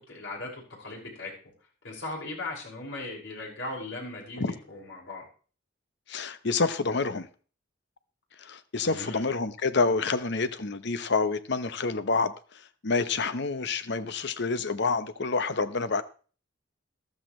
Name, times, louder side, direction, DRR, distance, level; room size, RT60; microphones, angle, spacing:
voice 1, 0.0-1.5 1.8-5.2 8.7-9.3, left 2 dB, 80° left, 5.7 m, -38 dB
voice 2, 6.1-7.3 8.4-12.3 12.8-16.0, left 4 dB, 65° left, 0.9 m, -28 dB
14.0 x 12.5 x 3.2 m
head